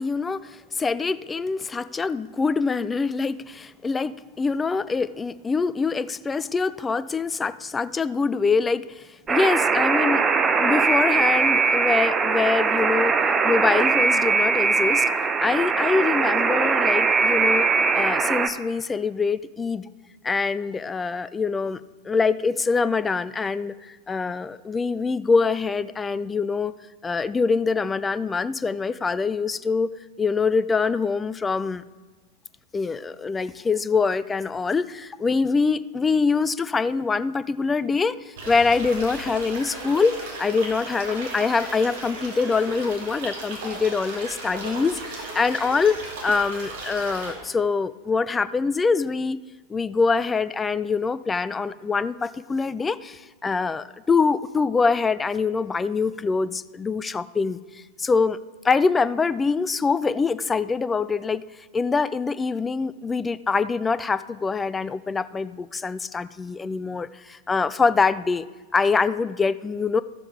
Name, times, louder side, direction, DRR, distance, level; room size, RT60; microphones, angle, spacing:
voice 1, 0.0-10.2 10.6-13.2 13.4-15.1 15.4-17.7 17.9-19.9 20.2-26.7 27.0-29.9 30.2-31.8 32.7-49.4 49.7-58.4 58.6-61.4 61.7-68.5 68.7-70.0, left 4 dB, 15° left, 16 dB, 0.3 m, -24 dB
Alarm, 9.3-18.5, right 5 dB, 20° right, 0.6 m, -21 dB
sound 1, 38.4-47.3, right 2 dB, 55° right, 2.9 m, -36 dB
13.0 x 7.6 x 4.7 m, 1.3 s
figure-of-eight pair, 90°, 0 cm